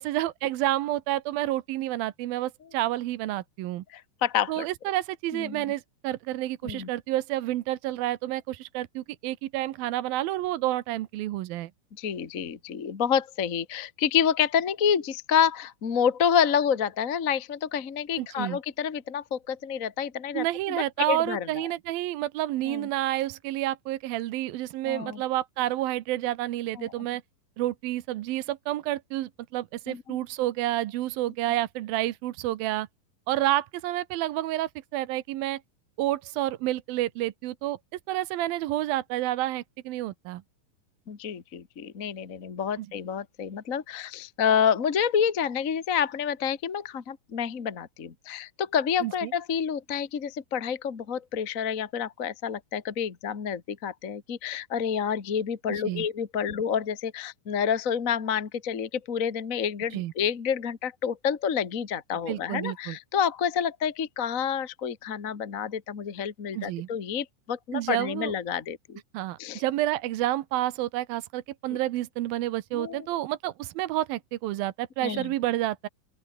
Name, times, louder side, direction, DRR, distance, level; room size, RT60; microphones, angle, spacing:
voice 1, 0.0-3.8 4.5-11.7 18.2-18.6 20.3-27.2 27.6-32.9 33.3-35.6 36.0-37.8 38.1-40.4 42.8-42.9 49.0-49.3 55.7-56.1 59.9-60.1 62.3-63.0 66.5-66.9 67.7-68.3 69.1-75.9, right 15 dB, 85° right, 2.8 m, -29 dB
voice 2, 3.9-4.6 5.3-5.6 6.6-6.9 12.0-21.5 22.7-22.9 24.8-25.2 26.8-26.9 29.9-30.2 41.1-69.0 69.4-69.6 72.7-73.1 75.0-75.3, left 8 dB, 35° left, 1.3 m, -28 dB
open air
omnidirectional pair, 4.1 m